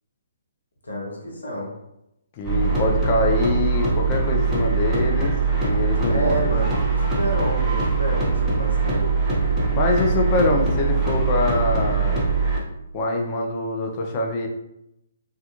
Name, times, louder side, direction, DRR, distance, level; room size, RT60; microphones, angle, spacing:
voice 1, 0.8-1.7 6.1-9.1, right 1 dB, 75° left, -3 dB, 0.9 m, -29 dB
voice 2, 2.4-6.5 9.7-12.2 12.9-14.5, left 2 dB, 35° left, 1 dB, 0.5 m, -24 dB
sound 1, 2.4-12.6, right 4 dB, 15° right, 0.7 m, -22 dB
2.3 x 2.2 x 2.8 m, 0.85 s
figure-of-eight pair, 135°, 0 cm